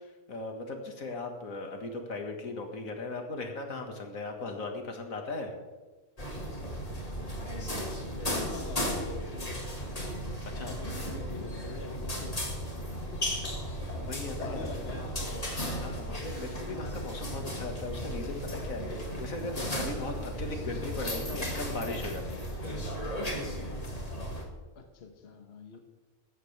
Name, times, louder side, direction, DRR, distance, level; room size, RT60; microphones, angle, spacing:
voice 1, 0.3-5.6 10.5-10.8 13.9-14.7 15.8-22.5 23.3-23.6, left 3 dB, 80° left, 3 dB, 2.1 m, -38 dB
sound 1, 6.2-24.4, equal, 30° left, 2.0 m, -35 dB
voice 2, 8.3-9.7 10.6-13.4 14.2-15.6 24.7-25.8, left 3 dB, 50° left, 5 dB, 1.3 m, -45 dB
15.5 x 12.5 x 3.4 m, 1.3 s
omnidirectional pair, 1.4 m